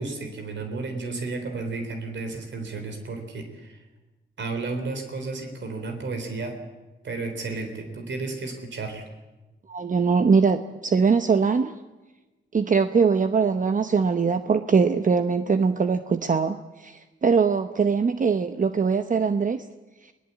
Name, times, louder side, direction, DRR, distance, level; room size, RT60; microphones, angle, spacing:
voice 1, 0.0-3.8 4.4-6.5 7.0-9.0, right 3 dB, 65° right, 6 dB, 3.8 m, -32 dB
voice 2, 9.7-11.7 12.5-19.6, right 5 dB, 40° right, 10 dB, 0.9 m, -22 dB
22.0 x 18.5 x 8.4 m, 1.1 s
cardioid pair, 65°, 20 cm